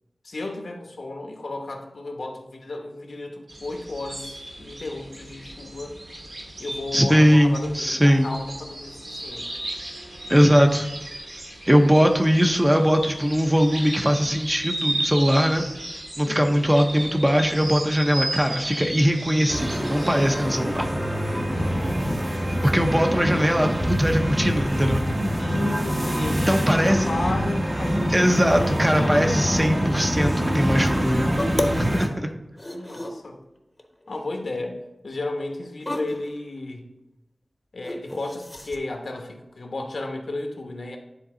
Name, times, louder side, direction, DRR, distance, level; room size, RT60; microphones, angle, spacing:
voice 1, 0.2-6.0 6.6-9.5 16.2-16.7 21.8-22.2 25.4-29.3 32.7-33.4 34.1-34.8 35.0-36.9 37.7-41.0, left 2 dB, 80° left, 3 dB, 1.0 m, -34 dB
sound 1, 3.5-20.4, right 1 dB, 70° right, 1.9 m, -35 dB
voice 2, 6.9-8.3 10.3-10.9 11.7-15.7 16.2-20.9 22.6-25.0 26.5-27.1 28.1-31.3 31.8-32.3, equal, 15° right, 4 dB, 0.7 m, -20 dB
sound 2, 19.5-32.1, equal, 40° right, 1.2 m, -25 dB
sound 3, 31.3-32.0 32.2-33.3 33.8-34.2 34.5-34.6 35.8-36.3 37.8-38.8, left 1 dB, 25° left, 0.9 m, -30 dB
10.0 x 4.0 x 3.8 m, 0.95 s
wide cardioid pair, 80°, 0 cm